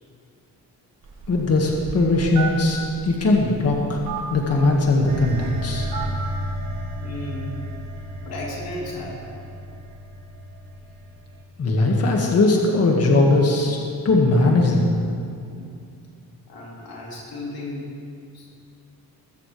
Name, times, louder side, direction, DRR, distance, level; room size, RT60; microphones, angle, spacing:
Telephone, 1.0-6.4, right 4 dB, 85° right, 4.4 m, -35 dB
voice 1, 1.3-4.0 4.3-5.9 11.6-13.8 14.1-14.9, left 2 dB, 40° left, -1 dB, 1.8 m, -19 dB
sound 1, 5.1-11.4, equal, 50° right, 2.6 m, -33 dB
voice 2, 7.0-7.6 8.2-9.4 15.5-15.7 16.5-17.9 18.3-18.5, left 1 dB, 80° left, -4 dB, 3.3 m, -34 dB
21.5 x 14.5 x 3.3 m, 2.4 s
wide cardioid pair, 165°, 36 cm